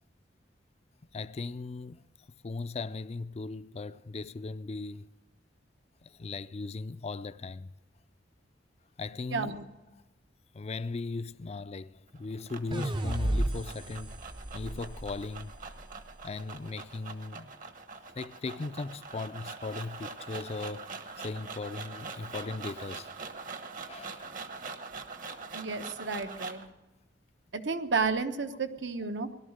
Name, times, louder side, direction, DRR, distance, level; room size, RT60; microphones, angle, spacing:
voice 1, 1.1-2.1 2.4-5.1 6.0-7.7 9.0-9.6 10.5-14.2 14.5-15.5 16.2-17.5 18.2-23.1 23.9-24.3, left 3 dB, 35° left, 0.4 m, -38 dB
voice 2, 9.3-9.6 25.5-26.6 27.5-29.3, right 4 dB, 75° right, 1.1 m, -32 dB
sound 1, 12.1-26.7, right 4 dB, 45° right, 1.1 m, -43 dB
sound 2, 12.7-16.0, right 1 dB, 25° right, 0.6 m, -33 dB
18.0 x 12.0 x 6.5 m
head